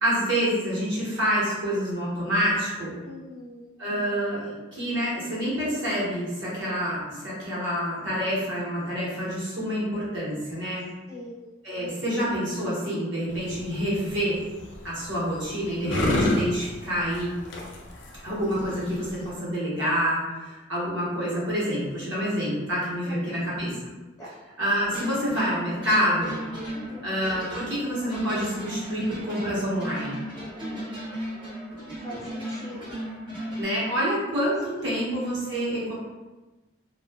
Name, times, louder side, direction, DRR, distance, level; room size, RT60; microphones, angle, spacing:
voice 1, 0.0-2.9 3.8-10.8 11.6-14.4 14.8-17.3 18.2-23.8 24.6-26.4 27.0-30.2 33.6-35.9, equal, 65° right, -7 dB, 1.0 m, -27 dB
voice 2, 3.0-3.6 11.1-11.4 23.1-23.4 24.2-24.3 26.7-27.1 30.6-31.0 32.0-32.9 34.8-35.0, left 1 dB, 15° left, -8 dB, 0.6 m, -41 dB
sound 1, 13.3-19.4, left 1 dB, 60° left, 0.4 m, -30 dB
sound 2, 24.8-33.6, equal, 25° right, 0.6 m, -36 dB
2.6 x 2.3 x 2.3 m, 1.2 s
head